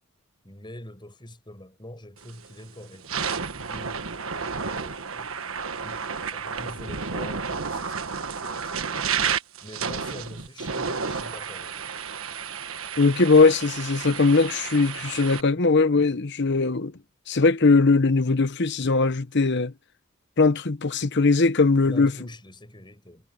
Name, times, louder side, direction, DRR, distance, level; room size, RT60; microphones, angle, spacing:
voice 1, 0.4-4.1 4.6-5.5 5.7-6.1 6.3-9.1 9.6-11.9 21.8-23.3, left 1 dB, 20° left, 7.0 m, -44 dB
sound 1, 2.2-2.5 2.9-15.4, right 6 dB, 65° right, 1.5 m, -31 dB
voice 2, 13.0-16.9 17.3-19.7 20.4-22.1, left 3 dB, 55° left, 1.0 m, -20 dB
head